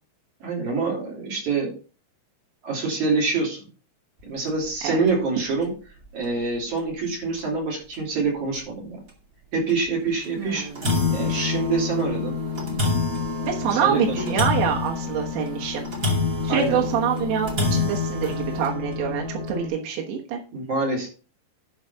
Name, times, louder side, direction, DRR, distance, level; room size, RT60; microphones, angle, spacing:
voice 1, 0.4-1.7 2.6-3.6 4.2-5.7 6.1-9.0 9.5-10.7 11.1-12.4 13.7-14.3 16.5-16.8 20.5-21.1, right 4 dB, 45° right, -2 dB, 4.2 m, -26 dB
sound 1, 4.5-4.7 5.1-5.2 5.6-5.7 6.8-6.9 7.4-7.5 7.9-8.0 8.5-8.6 9.7-9.9 10.2-10.3 10.5-19.7, left 4 dB, 25° right, 2.1 m, -27 dB
voice 2, 10.4-10.8 13.4-15.8 16.4-20.4, right 8 dB, 85° right, -1 dB, 3.7 m, -26 dB
11.5 x 4.9 x 5.6 m, 0.37 s
omnidirectional pair, 5.0 m